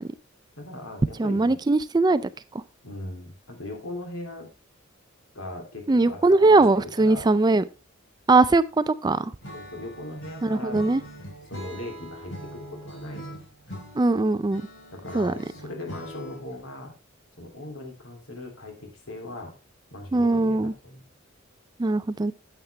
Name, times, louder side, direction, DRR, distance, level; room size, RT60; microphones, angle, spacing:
voice 1, 0.6-1.6 2.8-4.5 5.3-7.3 9.5-10.9 11.5-13.4 14.9-16.9 17.4-19.5 19.9-21.0, left 1 dB, 80° left, 3 dB, 3.0 m, -39 dB
voice 2, 1.2-2.2 2.5-2.6 5.9-7.6 8.3-9.3 10.4-11.0 14.0-14.6 15.1-15.3 20.1-20.7 21.8-22.3, right 3 dB, 20° right, 15 dB, 0.4 m, -20 dB
Acoustic guitar / Strum, 9.4-16.6, equal, 60° left, 4.5 m, -42 dB
9.5 x 8.0 x 3.3 m, 0.29 s
head